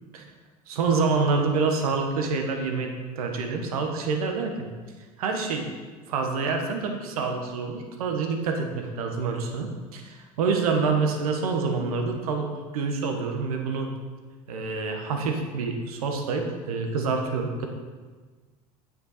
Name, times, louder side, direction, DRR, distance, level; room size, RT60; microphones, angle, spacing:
voice 1, 0.7-4.7 5.2-5.7 6.1-12.5 12.7-13.9 14.5-17.7, right 4 dB, 80° right, 4 dB, 1.3 m, -27 dB
9.1 x 7.5 x 4.2 m, 1.4 s
hypercardioid pair, 75°, 19 cm